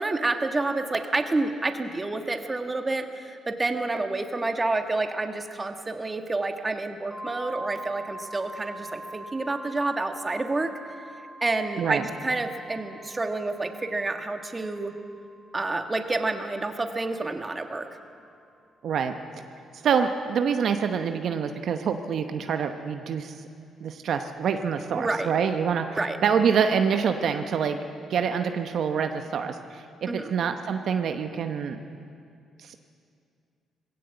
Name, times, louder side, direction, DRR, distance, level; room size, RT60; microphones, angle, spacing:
voice 1, 0.0-10.7 11.4-14.9 15.5-17.9 25.0-25.3 26.0-26.2 30.1-30.3, right 2 dB, 25° right, 6 dB, 1.5 m, -29 dB
sound 1, 7.1-16.7, right 1 dB, 5° right, 1.5 m, -43 dB
voice 2, 18.8-19.1 19.8-23.4 23.8-27.8 28.1-31.8 32.6-32.8, right 7 dB, 65° right, 6 dB, 0.9 m, -26 dB
19.5 x 16.5 x 8.0 m, 2.4 s
cardioid pair, 90°, 0 cm